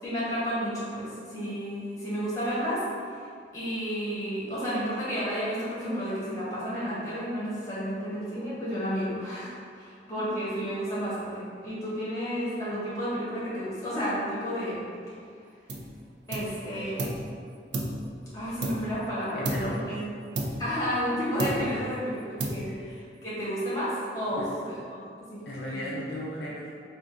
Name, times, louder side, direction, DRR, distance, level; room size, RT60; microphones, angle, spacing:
voice 1, 0.0-2.8 3.1-3.3 3.5-14.8 16.3-17.1 18.3-20.0 20.6-24.4 24.7-25.4, equal, 20° left, -9 dB, 1.2 m, -31 dB
sound 1, 15.7-16.0 16.3-17.3 17.7-19.1 19.4-19.9 20.4-21.1 21.4-21.9 22.4-23.0, right 2 dB, 75° right, 0.5 m, -33 dB
voice 2, 19.3-19.9 21.6-21.9 22.6-22.9 24.3-24.5 25.5-26.7, left 1 dB, 60° left, -6 dB, 0.5 m, -36 dB
3.5 x 2.5 x 3.8 m, 2.3 s
head